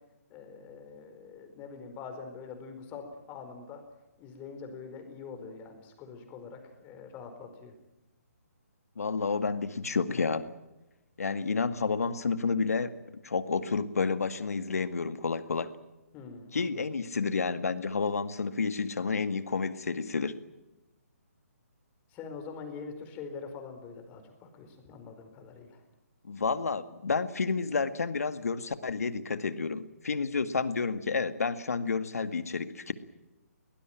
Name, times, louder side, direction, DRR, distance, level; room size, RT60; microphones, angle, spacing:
voice 1, 0.3-3.8 4.2-7.7 16.1-16.9 22.1-25.8, left 5 dB, 20° left, 6 dB, 4.6 m, -44 dB
voice 2, 9.0-10.5 11.2-12.9 13.2-15.7 16.5-20.4 26.2-32.9, left 4 dB, 70° left, 11 dB, 1.9 m, -30 dB
22.5 x 19.5 x 9.1 m, 0.98 s
figure-of-eight pair, 145°, 8 cm